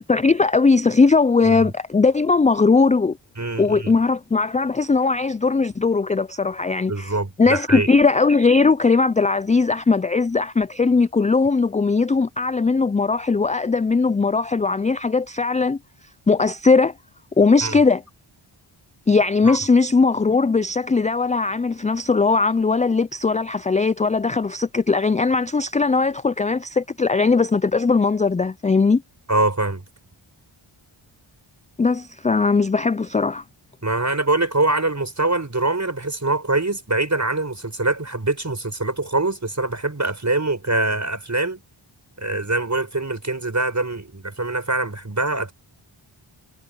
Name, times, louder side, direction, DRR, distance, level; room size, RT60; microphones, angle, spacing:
voice 1, 0.1-3.2 3.6-15.8 16.3-16.9 17.4-18.0 19.1-29.0 31.8-33.4, left 4 dB, 15° left, 0.3 m, -19 dB
voice 2, 3.4-3.9 6.9-7.9 17.6-17.8 19.4-19.6 29.3-29.8 33.8-41.6 42.2-45.5, right 2 dB, 35° right, 5.1 m, -24 dB
cardioid pair, 45°, 50 cm